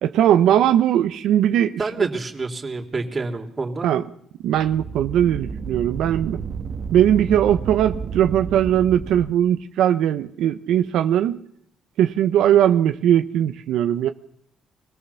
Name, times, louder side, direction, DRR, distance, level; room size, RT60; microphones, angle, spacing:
voice 1, 0.0-2.1 3.8-4.0 4.4-6.4 6.9-11.4 12.0-14.1, right 10 dB, 85° right, 8 dB, 0.9 m, -19 dB
voice 2, 1.8-3.9, right 3 dB, 30° right, 3 dB, 3.3 m, -27 dB
sound 1, 4.4-9.3, right 5 dB, 60° right, 1.6 m, -31 dB
24.0 x 17.5 x 7.1 m, 0.68 s
cardioid pair, 90°, 0 cm